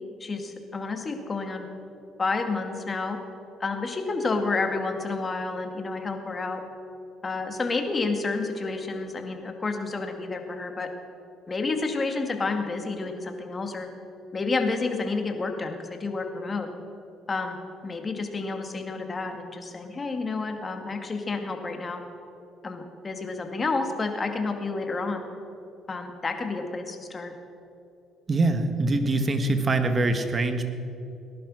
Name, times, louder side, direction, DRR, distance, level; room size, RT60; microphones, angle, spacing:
voice 1, 0.2-1.7 2.2-3.2 3.6-6.6 7.2-10.9 11.5-13.9 14.3-16.7 17.3-17.6 17.8-22.0 22.6-25.3 25.9-27.3, left 3 dB, 30° left, 5 dB, 2.2 m, -30 dB
voice 2, 28.3-30.6, right 2 dB, 35° right, 8 dB, 1.7 m, -24 dB
19.0 x 11.0 x 6.3 m, 2.8 s
supercardioid pair, 85°, 0 cm